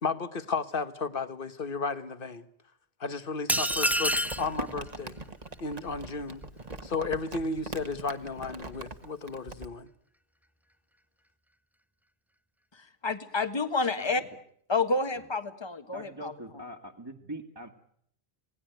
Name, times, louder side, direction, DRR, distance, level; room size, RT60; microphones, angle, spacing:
voice 1, 0.0-2.4 3.0-5.2 5.6-6.4 6.8-9.9, left 4 dB, 55° left, 13 dB, 1.6 m, -33 dB
sound 1, 3.5-4.5, equal, ahead, 0.8 m, -26 dB
Crumpling crinkling, 3.6-9.7, right 2 dB, 35° right, 1.7 m, -41 dB
voice 2, 12.7-14.2 14.7-16.3, left 3 dB, 25° left, 10 dB, 1.5 m, -29 dB
voice 3, 15.9-17.7, right 1 dB, 20° right, 0 dB, 1.9 m, -42 dB
27.0 x 19.0 x 9.2 m, 0.67 s
omnidirectional pair, 1.1 m